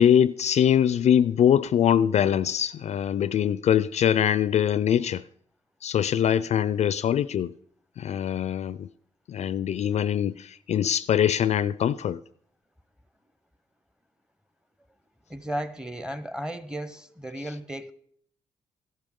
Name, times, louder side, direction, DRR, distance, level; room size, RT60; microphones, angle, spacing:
voice 1, 0.0-5.2 5.8-7.5 8.0-8.9 9.3-12.2, left 9 dB, 55° left, 0.4 m, -23 dB
voice 2, 15.3-17.9, right 1 dB, 5° right, 0.7 m, -34 dB
13.5 x 12.0 x 3.7 m
cardioid pair, 70°, 14 cm